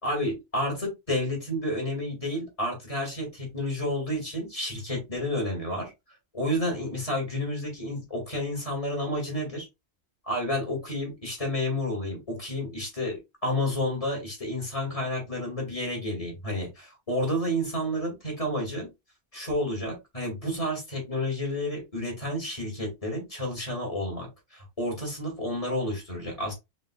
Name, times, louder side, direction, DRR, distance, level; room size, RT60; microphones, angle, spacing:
voice 1, 0.0-5.9 6.3-9.7 10.2-18.9 19.3-26.5, left 1 dB, 30° left, 0 dB, 2.2 m, -30 dB
5.3 x 3.8 x 2.3 m, 0.22 s
omnidirectional pair, 1.1 m